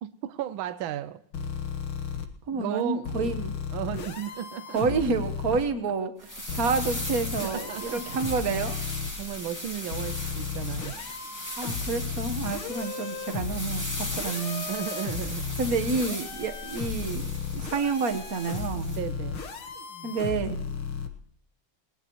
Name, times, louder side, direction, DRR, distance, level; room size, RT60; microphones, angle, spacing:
voice 1, 0.0-1.2 2.5-3.3 3.7-4.8 7.4-8.0 9.2-11.0 14.7-15.5 19.0-19.5, right 10 dB, 75° right, 1.5 m, -34 dB
sound 1, 1.3-2.2 3.0-5.6 6.5-9.1 9.9-21.1, left 5 dB, 75° left, 2.2 m, -34 dB
voice 2, 2.5-3.5 4.7-8.8 11.6-14.7 15.6-19.0 20.0-20.6, right 4 dB, 45° right, 1.5 m, -29 dB
sound 2, 6.2-19.0, left 1 dB, 10° left, 2.0 m, -38 dB
20.5 x 19.5 x 3.1 m
omnidirectional pair, 2.4 m